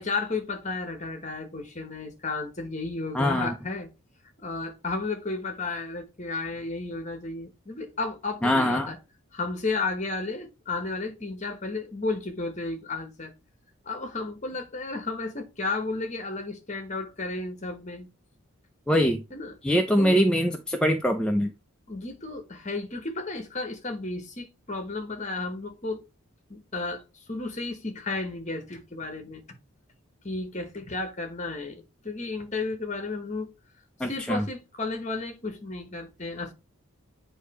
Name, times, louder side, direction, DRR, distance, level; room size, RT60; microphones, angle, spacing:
voice 1, 0.0-3.9 4.4-9.0 9.3-13.3 13.9-18.1 19.3-19.6 20.0-20.2 21.9-26.0 26.5-29.4 30.2-33.5 34.0-36.5, left 3 dB, 30° left, 1.1 m, -33 dB
voice 2, 3.1-3.5 8.4-8.9 18.9-19.2 19.6-21.5 34.0-34.4, equal, 5° left, 0.4 m, -23 dB
8.2 x 2.8 x 4.7 m
head